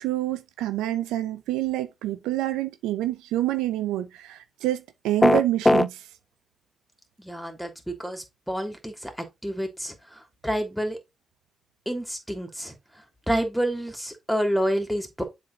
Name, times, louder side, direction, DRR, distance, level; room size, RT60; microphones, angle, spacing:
voice 1, 0.0-6.1, right 14 dB, 85° right, 0.6 m, -27 dB
sound 1, 5.2-5.9, left 1 dB, 15° left, 0.3 m, -17 dB
voice 2, 7.2-11.0 11.9-12.7 13.3-15.2, equal, ahead, 2.9 m, -29 dB
7.6 x 4.1 x 4.0 m
hypercardioid pair, 45°, 0 cm